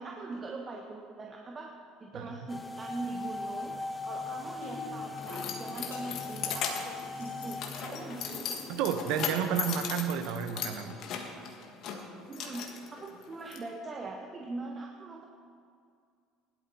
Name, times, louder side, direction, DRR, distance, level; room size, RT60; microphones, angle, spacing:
voice 1, 0.0-8.5 12.3-15.2, right 3 dB, 30° right, 0 dB, 1.4 m, -42 dB
sound 1, 2.5-8.9, left 3 dB, 10° left, 1.1 m, -40 dB
sound 2, 4.3-10.6 12.3-12.4, left 5 dB, 85° left, 2.4 m, -49 dB
Keys jangling, 4.5-13.6, left 7 dB, 55° left, 1.6 m, -38 dB
voice 2, 8.7-11.0, right 8 dB, 65° right, 8 dB, 1.0 m, -31 dB
16.5 x 11.5 x 4.2 m, 2.3 s
hypercardioid pair, 65°, 0 cm